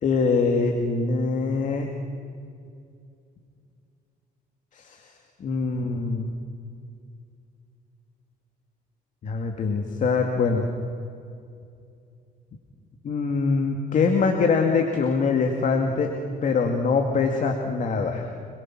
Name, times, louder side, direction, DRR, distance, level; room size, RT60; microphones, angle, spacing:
voice 1, 0.0-1.9 4.7-5.0 5.4-6.3 9.2-10.7 13.0-16.1 16.4-18.3, left 4 dB, 50° left, 3 dB, 2.3 m, -23 dB
27.0 x 22.0 x 6.1 m, 2.4 s
cardioid pair, 110°, 17 cm